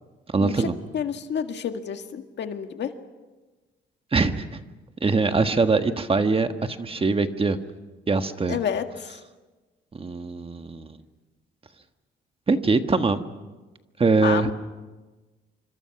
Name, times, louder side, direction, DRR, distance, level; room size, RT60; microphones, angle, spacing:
voice 1, 0.3-0.7 4.1-4.6 5.0-7.6 8.1-8.6 9.9-11.0 12.5-13.3 14.0-14.5, right 4 dB, 30° right, 8 dB, 1.5 m, -22 dB
voice 2, 0.9-2.9 8.5-8.8 14.2-14.5, left 8 dB, 60° left, 7 dB, 1.8 m, -29 dB
26.5 x 25.0 x 6.0 m, 1.2 s
cardioid pair, 90°, 20 cm